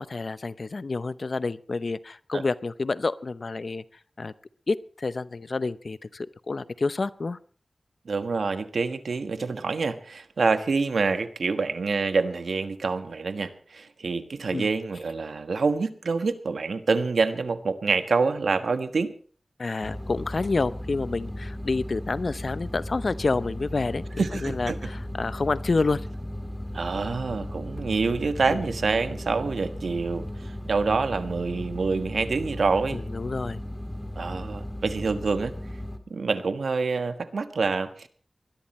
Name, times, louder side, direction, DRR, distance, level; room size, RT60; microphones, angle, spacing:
voice 1, 0.0-3.8 4.2-4.3 4.7-7.4 14.5-14.7 19.6-26.1 28.5-28.7 32.9-33.6, left 3 dB, 65° left, 16 dB, 0.7 m, -29 dB
voice 2, 8.0-19.1 24.2-24.8 26.7-33.0 34.2-35.5 36.1-38.1, right 4 dB, 90° right, 9 dB, 1.3 m, -26 dB
sound 1, 19.8-36.0, left 1 dB, 10° left, 2.5 m, -36 dB
20.5 x 12.5 x 4.3 m, 0.43 s
cardioid pair, 45°, 0 cm